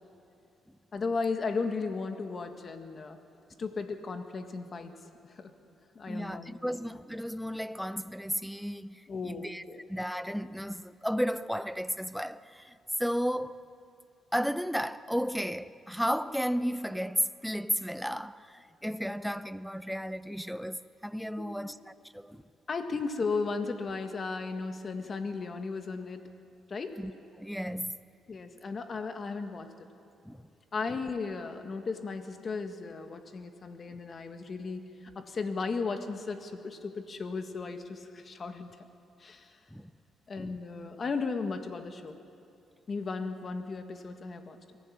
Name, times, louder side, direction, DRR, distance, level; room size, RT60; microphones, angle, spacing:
voice 1, 0.9-3.2 3.6-5.0 5.3-5.5 6.0-6.8 9.1-9.8 21.4-21.7 22.7-26.2 26.7-27.0 28.3-29.9 30.7-38.7 39.2-39.5 40.3-42.2 42.9-44.6, left 4 dB, 40° left, 1.8 m, -35 dB
voice 2, 6.1-9.6 9.9-13.7 14.3-22.4 27.0-27.1 27.4-28.0 30.2-30.4 30.9-31.0 39.7-39.9 40.4-40.6, equal, ahead, 0.6 m, -33 dB
23.0 x 16.0 x 8.7 m
cardioid pair, 90°, 0 cm